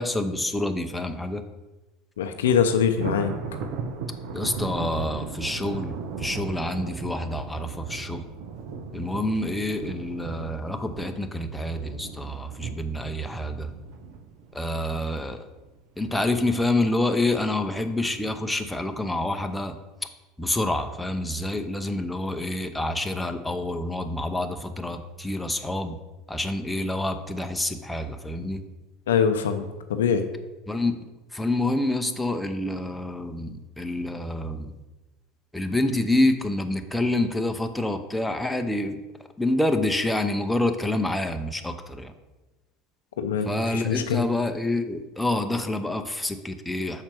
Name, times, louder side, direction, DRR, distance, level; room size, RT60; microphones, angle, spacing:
voice 1, 0.0-1.4 4.3-8.2 8.9-13.7 14.5-15.4 16.0-19.7 20.4-26.0 26.3-28.6 30.7-31.0 31.3-34.7 35.5-39.0 39.4-42.1 43.4-47.0, left 1 dB, 5° left, 6 dB, 0.7 m, -27 dB
voice 2, 2.2-3.3 29.1-30.3 43.2-44.3, left 7 dB, 90° left, 8 dB, 0.6 m, -23 dB
Thunder, 2.4-15.7 16.1-16.4 16.8-16.9 17.7-18.3, right 5 dB, 70° right, 0.8 m, -37 dB
5.8 x 4.4 x 6.1 m, 1.1 s
hypercardioid pair, 95°, 0 cm